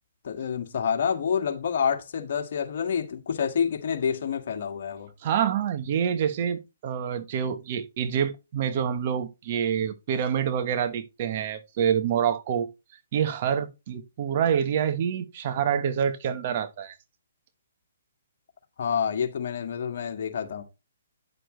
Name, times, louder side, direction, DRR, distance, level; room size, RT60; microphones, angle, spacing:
voice 1, 0.2-5.1 18.8-20.6, left 7 dB, 60° left, 2.0 m, -28 dB
voice 2, 5.2-12.7 13.1-17.0, right 8 dB, 45° right, 1.4 m, -27 dB
10.0 x 6.7 x 3.3 m
hypercardioid pair, 140°, 0 cm